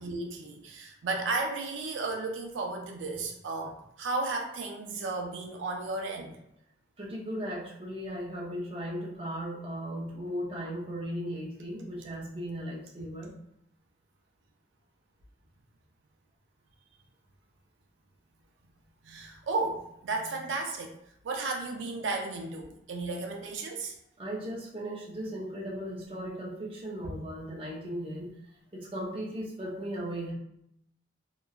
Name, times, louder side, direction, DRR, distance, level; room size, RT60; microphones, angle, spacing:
voice 1, 0.0-6.4 19.0-20.9 21.2-23.9, right 3 dB, 90° right, 2 dB, 0.4 m, -34 dB
voice 2, 7.0-13.3 24.2-28.3 28.7-30.3, equal, 30° right, -3 dB, 0.6 m, -37 dB
2.9 x 2.2 x 2.3 m, 0.75 s
head